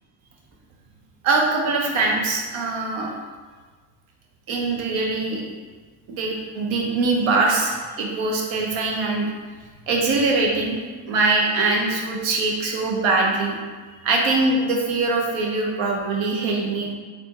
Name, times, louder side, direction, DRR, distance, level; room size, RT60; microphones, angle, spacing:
voice 1, 1.2-3.1 4.5-5.4 6.2-9.3 9.9-13.5 13.9-16.9, right 3 dB, 75° right, 0 dB, 0.8 m, -22 dB
3.4 x 2.6 x 2.9 m, 1.4 s
supercardioid pair, 70°, 48 cm